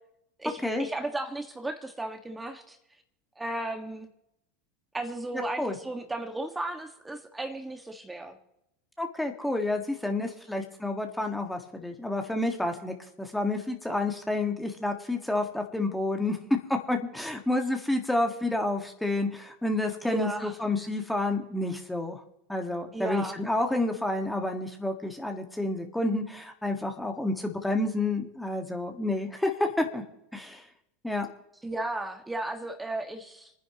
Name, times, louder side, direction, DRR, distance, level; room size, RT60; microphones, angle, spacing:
voice 1, 0.4-2.8 3.4-4.1 4.9-8.4 20.1-20.6 22.9-23.4 31.6-33.5, right 2 dB, 10° right, 5 dB, 1.7 m, -35 dB
voice 2, 9.0-16.4 16.7-22.2 22.5-30.0 30.3-30.6 31.0-31.3, left 2 dB, 5° left, 4 dB, 1.7 m, -29 dB
29.0 x 10.0 x 3.0 m, 0.83 s
hypercardioid pair, 85°, 0 cm